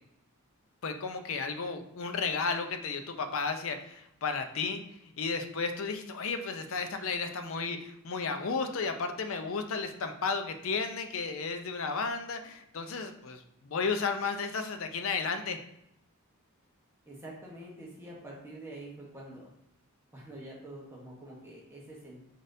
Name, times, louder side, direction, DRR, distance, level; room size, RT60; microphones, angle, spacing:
voice 1, 0.8-4.8 5.2-15.6, left 4 dB, 60° left, 7 dB, 0.5 m, -33 dB
voice 2, 17.1-19.5 20.1-22.2, right 1 dB, 10° right, -4 dB, 1.0 m, -46 dB
4.9 x 4.1 x 2.6 m, 0.80 s
head